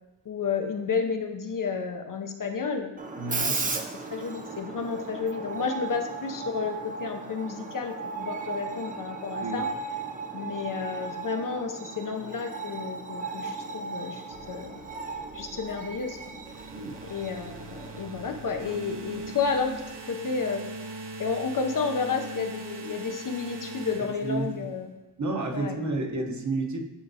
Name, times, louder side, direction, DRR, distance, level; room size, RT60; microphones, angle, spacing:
voice 1, 0.3-2.9 3.3-3.6 4.0-9.7 10.3-14.8 15.3-16.4 17.0-19.8 20.1-20.6 21.2-24.9 25.5-25.8, left 5 dB, 50° left, 5 dB, 0.6 m, -31 dB
Screech, 3.0-19.5, right 4 dB, 20° right, 0.4 m, -36 dB
voice 2, 3.2-3.7 9.4-9.7 16.7-17.0 24.0-24.6 25.2-26.8, right 2 dB, 40° right, 1 dB, 0.9 m, -31 dB
sound 1, 14.3-20.0, right 2 dB, 85° right, 1.9 m, -51 dB
sound 2, 16.5-24.8, right 2 dB, 65° right, 1.0 m, -41 dB
10.0 x 5.2 x 2.7 m, 1.0 s
wide cardioid pair, 155°, 43 cm